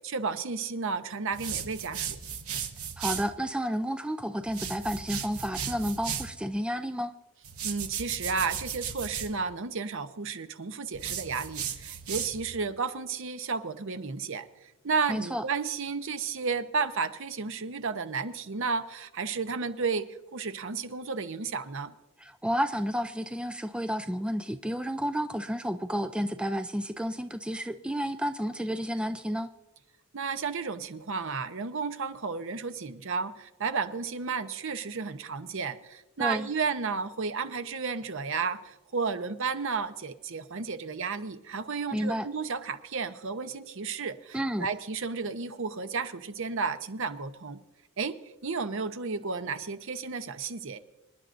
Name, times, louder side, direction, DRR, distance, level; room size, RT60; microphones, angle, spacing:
voice 1, 0.0-2.2 7.6-14.4 14.8-21.9 30.1-47.6 48.0-48.1 48.4-50.8, right 5 dB, 60° right, 10 dB, 0.8 m, -32 dB
sound 1, 1.3-3.3 4.4-6.4 7.4-9.3 10.9-12.5, right 7 dB, 80° right, 1.1 m, -36 dB
voice 2, 3.0-7.1 15.1-15.4 22.2-29.5 36.2-36.5 41.9-42.3 44.3-44.7, equal, 5° right, 9 dB, 0.3 m, -31 dB
26.5 x 10.5 x 2.6 m, 1.0 s
head